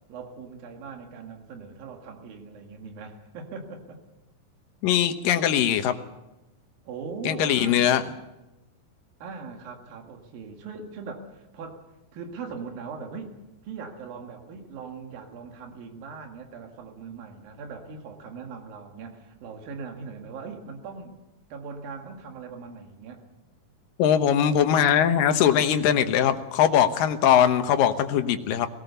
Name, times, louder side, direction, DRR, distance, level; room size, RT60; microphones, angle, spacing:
voice 1, 0.1-4.0 6.9-8.0 9.2-11.8 12.1-13.4 13.6-21.2 21.5-23.2, right 5 dB, 80° right, 3 dB, 3.7 m, -40 dB
voice 2, 4.8-6.0 7.3-8.0 24.0-28.7, left 9 dB, 75° left, 9 dB, 2.7 m, -21 dB
20.5 x 18.0 x 7.0 m, 0.97 s
omnidirectional pair, 4.0 m